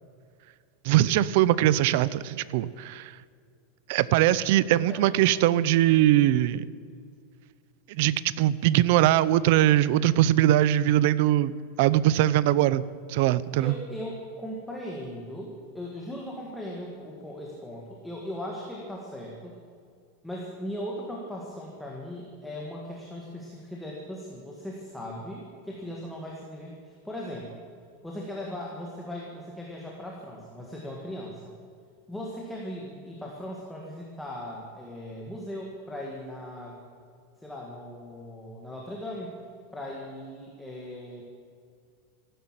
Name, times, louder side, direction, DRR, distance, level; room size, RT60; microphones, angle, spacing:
voice 1, 0.8-3.1 3.9-6.6 7.9-11.5 11.8-12.8 13.1-13.8, right 13 dB, 50° right, 18 dB, 0.5 m, -21 dB
voice 2, 13.6-19.6 20.2-27.6 28.0-31.4 32.1-36.8 37.4-39.4 39.7-41.2, left 1 dB, ahead, -3 dB, 1.6 m, -38 dB
14.5 x 12.5 x 7.5 m, 2.3 s
supercardioid pair, 175°, 0 cm